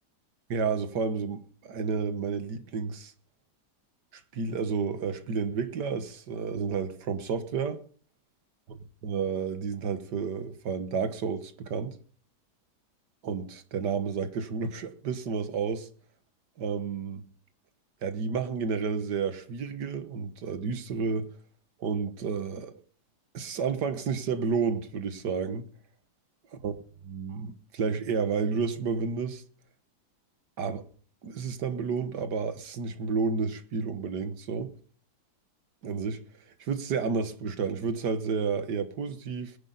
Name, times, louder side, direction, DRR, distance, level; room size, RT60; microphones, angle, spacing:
voice 1, 0.5-3.1 4.1-7.8 8.7-12.0 13.2-15.9 16.6-17.2 18.0-21.3 21.8-22.8 23.3-25.7 26.5-26.7 27.0-29.4 30.6-30.8 31.2-34.7 35.8-36.2 36.6-39.6, right 5 dB, 80° right, 1.9 m, -31 dB
22.0 x 10.5 x 4.0 m
omnidirectional pair, 1.8 m